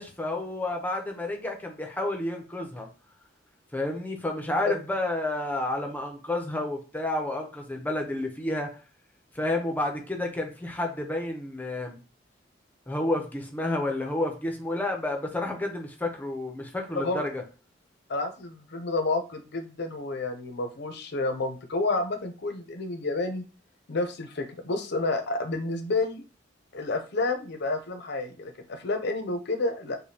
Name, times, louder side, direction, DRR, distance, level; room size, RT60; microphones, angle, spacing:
voice 1, 0.0-2.9 3.7-8.7 9.3-12.0 12.9-17.4, left 1 dB, 10° left, 2 dB, 0.6 m, -30 dB
voice 2, 18.1-23.4 23.9-26.2 26.7-30.0, left 2 dB, 60° left, 7 dB, 0.6 m, -30 dB
5.0 x 2.2 x 2.8 m, 0.34 s
head